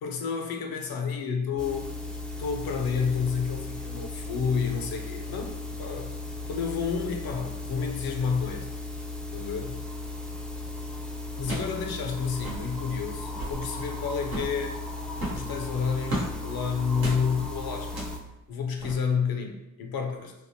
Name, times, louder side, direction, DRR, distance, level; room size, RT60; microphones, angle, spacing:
voice 1, 0.0-1.9 2.4-6.1 6.5-8.7 9.3-9.8 11.4-14.8 15.3-17.9 18.5-20.3, left 6 dB, 70° left, 4 dB, 0.6 m, -30 dB
sound 1, 1.6-18.2, left 2 dB, ahead, 0.4 m, -36 dB
sound 2, 10.7-10.8 11.4-11.8 12.1-12.2 12.3-12.7 13.2-13.6 14.2-14.6 15.1-16.3 16.9-17.2 17.8-18.2 18.8-18.9, right 1 dB, 75° right, 1.0 m, -35 dB
3.4 x 2.0 x 2.7 m, 0.93 s
supercardioid pair, 55°, 37 cm